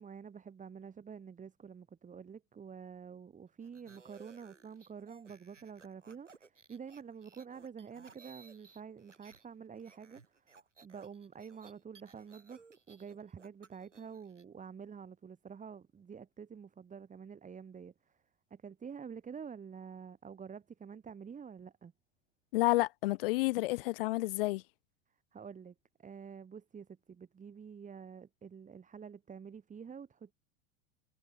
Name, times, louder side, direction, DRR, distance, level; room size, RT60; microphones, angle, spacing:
voice 1, 0.0-10.5 10.8-17.9 18.5-21.9 25.3-30.3, right 6 dB, 20° right, 4.9 m, -48 dB
sound 1, 3.6-9.5 9.7-14.4, right 4 dB, 85° right, 4.7 m, -60 dB
voice 2, 22.5-24.6, left 20 dB, 50° left, 0.7 m, -30 dB
figure-of-eight pair, 85°, 36 cm